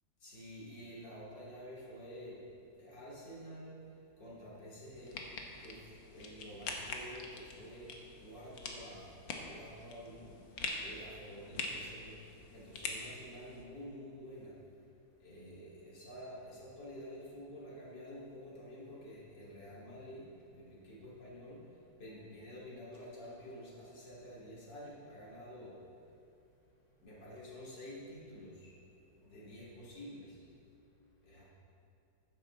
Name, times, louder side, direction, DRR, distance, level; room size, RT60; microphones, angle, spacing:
voice 1, 0.2-2.5 2.8-26.1 27.0-30.5 31.2-31.4, equal, 70° left, -7 dB, 3.7 m, -50 dB
sound 1, 4.9-13.6, left 3 dB, 90° left, 1.9 m, -44 dB
14.0 x 9.9 x 3.9 m, 2.6 s
omnidirectional pair, 2.0 m